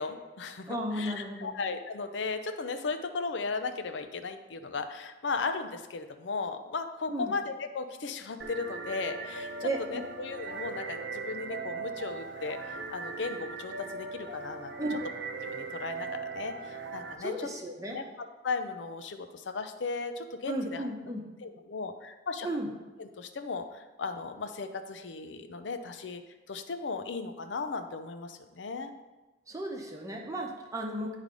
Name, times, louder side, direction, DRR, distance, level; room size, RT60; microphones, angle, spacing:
voice 1, 0.0-14.7 15.4-17.5 17.9-18.1 18.4-20.9 21.4-22.5 23.0-26.2 26.5-28.9, left 4 dB, 75° left, 7 dB, 0.6 m, -36 dB
voice 2, 0.7-1.5 7.1-7.3 9.6-10.0 14.8-15.0 17.2-18.0 20.5-21.2 22.4-22.7 29.5-31.2, right 1 dB, 20° right, 1 dB, 0.8 m, -34 dB
sound 1, 8.4-17.1, right 4 dB, 75° right, 0.8 m, -39 dB
9.8 x 3.3 x 5.2 m, 1.1 s
head